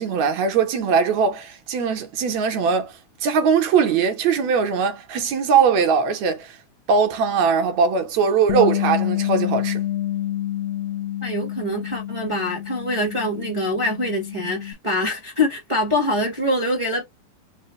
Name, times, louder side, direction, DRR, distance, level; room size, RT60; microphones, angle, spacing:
voice 1, 0.0-2.9 3.2-6.6 6.9-9.8, right 6 dB, 75° right, 1.9 m, -20 dB
Bass guitar, 8.5-14.7, left 13 dB, 80° left, 1.6 m, -27 dB
voice 2, 11.2-17.0, left 1 dB, 55° right, 0.3 m, -24 dB
4.7 x 2.1 x 3.1 m
omnidirectional pair, 3.4 m